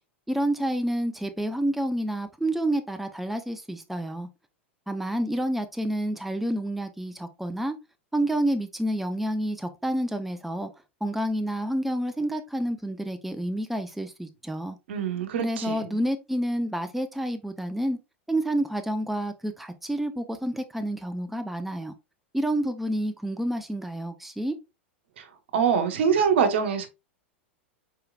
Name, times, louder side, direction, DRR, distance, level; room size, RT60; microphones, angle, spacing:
voice 1, 0.3-4.3 4.9-7.8 8.1-10.7 11.0-14.8 15.4-18.0 18.3-21.9 22.3-24.6, right 1 dB, 5° right, 0.7 m, -29 dB
voice 2, 14.9-15.9 25.2-25.3 25.5-26.9, right 7 dB, 70° right, 1.2 m, -24 dB
4.8 x 4.7 x 2.4 m
hypercardioid pair, 95°, 6 cm